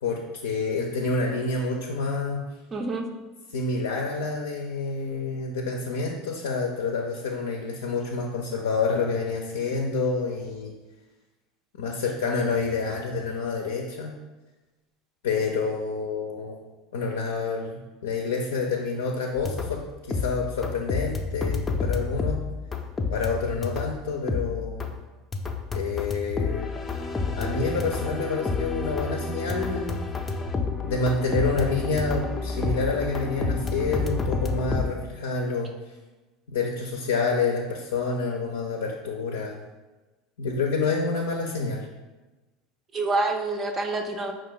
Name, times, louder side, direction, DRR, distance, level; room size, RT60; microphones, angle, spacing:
voice 1, 0.0-2.4 3.5-10.7 11.8-14.1 15.2-16.6 16.9-19.8 20.1-22.4 23.1-24.8 25.7-26.7 27.4-30.0 30.8-35.7 36.5-39.6 40.4-41.9, left 4 dB, 75° left, 0 dB, 0.5 m, -28 dB
voice 2, 2.7-3.1 42.9-44.3, right 2 dB, 30° right, 4 dB, 0.5 m, -27 dB
sound 1, 19.4-19.8 20.1-24.0 24.3-25.0 25.3-34.9, left 4 dB, 20° left, 0.5 m, -29 dB
5.0 x 2.5 x 3.8 m, 1.2 s
figure-of-eight pair, 75°, 0 cm